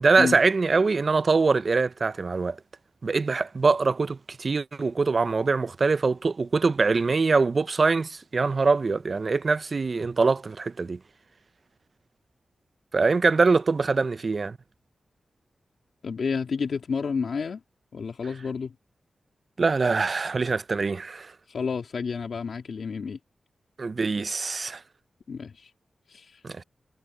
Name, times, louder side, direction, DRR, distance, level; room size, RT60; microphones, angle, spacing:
voice 1, 0.0-2.6 3.0-11.0 12.9-14.6 19.6-21.3 23.8-24.8 26.4-26.6, right 4 dB, 50° right, 0.5 m, -23 dB
voice 2, 16.0-17.6 17.9-18.7 21.5-23.2 25.3-25.7 26.1-26.4, left 5 dB, 75° left, 2.6 m, -30 dB
wide cardioid pair, 85°, 0 cm